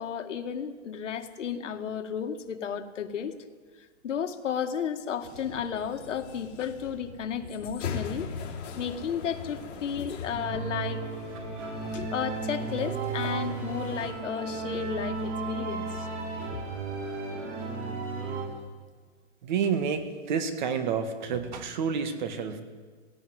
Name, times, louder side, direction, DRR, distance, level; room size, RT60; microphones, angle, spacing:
voice 1, 0.0-3.3 4.0-8.3 8.8-11.1 11.8-16.1 16.5-16.6, left 7 dB, 85° left, 7 dB, 1.9 m, -33 dB
sound 1, 5.2-14.1, left 6 dB, 60° left, 4.0 m, -41 dB
sound 2, 10.3-18.4, right 4 dB, 75° right, 7.7 m, -34 dB
voice 2, 19.4-22.6, right 6 dB, 40° right, 10 dB, 1.8 m, -29 dB
17.0 x 17.0 x 9.4 m, 1.5 s
hypercardioid pair, 175°, 36 cm